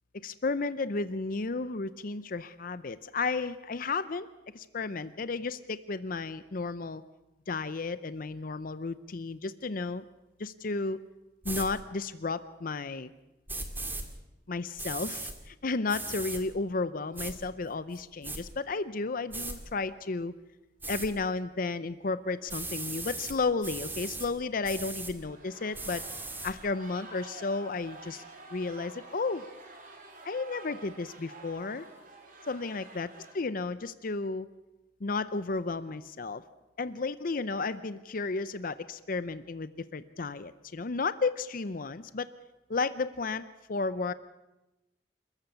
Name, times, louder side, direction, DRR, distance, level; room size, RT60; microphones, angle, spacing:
voice 1, 0.2-4.3 4.5-7.0 7.5-10.0 10.4-11.0 11.4-13.1 14.5-20.3 20.9-26.0 26.4-28.2 28.5-29.4 30.2-31.9 32.5-33.1 33.3-34.5 35.0-36.4 36.8-42.3 42.7-43.4 43.7-44.1, left 3 dB, 50° left, 14 dB, 0.6 m, -33 dB
sound 1, 11.4-11.7 13.5-14.0 14.8-15.3 15.9-16.4 17.2-17.3 17.9-18.4 19.3-19.6 20.8-21.1 22.5-23.4 23.6-24.3 24.6-25.1 25.7-26.5, right 2 dB, 10° right, 2.2 m, -37 dB
sound 2, 21.6-21.7 22.3-22.7 23.8-24.4 24.9-33.3, right 2 dB, 50° right, 3.6 m, -50 dB
28.5 x 14.0 x 7.0 m, 1.0 s
head